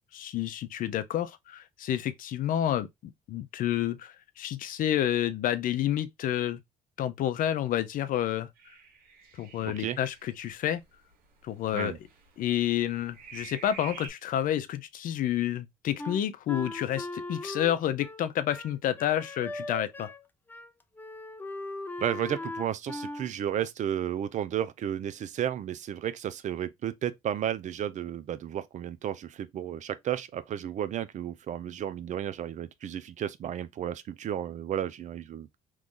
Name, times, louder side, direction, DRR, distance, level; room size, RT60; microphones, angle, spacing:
voice 1, 0.1-6.6 7.0-8.5 9.4-10.8 11.4-11.9 12.4-20.1, left 11 dB, 65° left, 0.6 m, -29 dB
sound 1, 8.6-14.1, right 6 dB, 75° right, 1.3 m, -48 dB
voice 2, 9.6-10.0 11.7-12.0 22.0-35.6, right 10 dB, 55° right, 0.5 m, -33 dB
Wind instrument woodwind instrument, 16.0-20.2 20.5-20.7 21.0-23.3, left 2 dB, 10° left, 0.5 m, -39 dB
3.1 x 2.5 x 3.7 m
cardioid pair, 85°, 15 cm